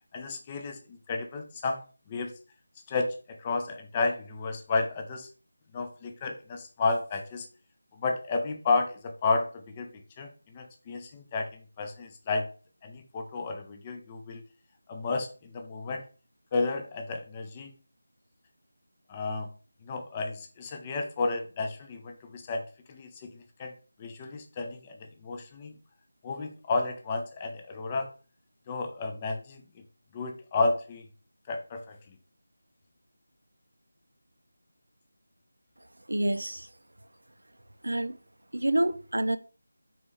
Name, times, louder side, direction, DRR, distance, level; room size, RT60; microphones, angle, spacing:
voice 1, 0.1-1.8 2.1-2.3 2.9-5.3 5.7-7.5 8.0-9.9 10.2-11.5 11.8-12.5 12.8-14.4 14.9-16.0 16.5-17.7 19.1-19.5 19.8-22.6 22.9-23.7 24.0-25.7 26.2-28.1 28.7-29.6 30.1-31.0 31.5-31.9, left 3 dB, 15° left, 0.4 m, -32 dB
voice 2, 36.1-36.7 37.8-38.2 38.5-39.4, right 1 dB, 65° right, 0.4 m, -27 dB
4.2 x 3.1 x 3.1 m
figure-of-eight pair, 165°, 0 cm